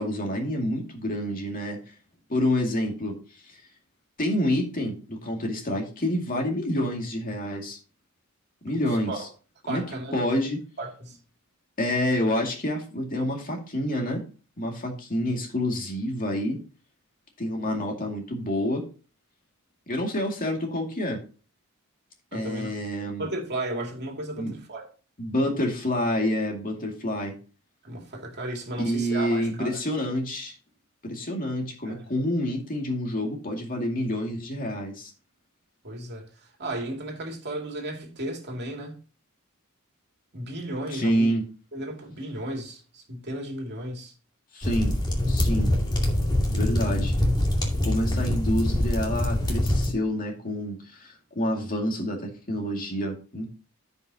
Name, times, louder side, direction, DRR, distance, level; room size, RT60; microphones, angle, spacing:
voice 1, 0.0-1.8 2.3-3.6 4.2-7.8 8.6-9.3 9.7-9.8 10.1-10.6 11.8-14.2 14.6-16.6 17.4-18.9 19.9-21.2 22.3-23.3 24.4-24.5 25.2-27.4 28.8-30.6 31.0-35.1 40.9-41.4 44.5-45.0 45.3-45.7 46.5-47.2 47.8-53.5, left 1 dB, 40° left, 2.2 m, -28 dB
voice 2, 9.7-10.2 10.8-11.2 15.3-15.4 22.3-22.7 23.2-24.9 27.8-29.8 31.9-32.0 35.8-39.0 40.3-41.3 41.7-44.1, right 1 dB, 50° right, 2.4 m, -34 dB
sound 1, 44.6-49.9, left 1 dB, 20° left, 2.3 m, -24 dB
15.5 x 5.5 x 2.8 m
head